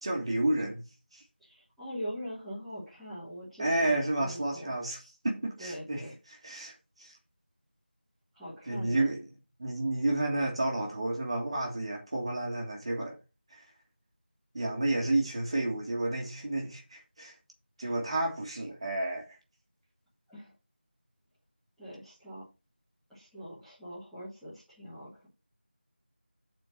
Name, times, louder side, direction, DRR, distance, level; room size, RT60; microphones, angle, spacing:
voice 1, 0.0-0.8 1.1-1.2 3.6-7.1 8.7-9.2 9.6-13.2 13.5-13.7 14.5-17.3 17.8-19.4, right 2 dB, 30° right, 1.8 m, -31 dB
voice 2, 1.4-4.7 5.6-6.2 8.3-9.0 20.3-20.5 21.8-22.4 23.1-25.3, equal, ahead, 1.2 m, -42 dB
8.7 x 4.4 x 5.9 m
figure-of-eight pair, 175°, 6 cm